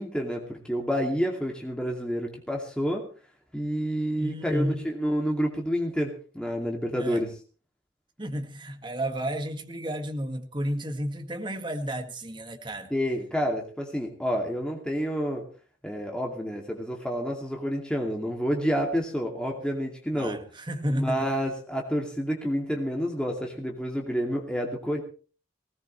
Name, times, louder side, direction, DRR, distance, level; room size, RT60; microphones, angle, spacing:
voice 1, 0.0-3.0 3.5-7.3 12.9-15.5 15.8-20.4 20.9-25.0, equal, 5° left, 2.5 m, -29 dB
voice 2, 4.2-4.8 7.0-7.2 8.2-12.9 20.1-21.3, equal, 25° right, 1.9 m, -32 dB
20.0 x 18.5 x 3.3 m
head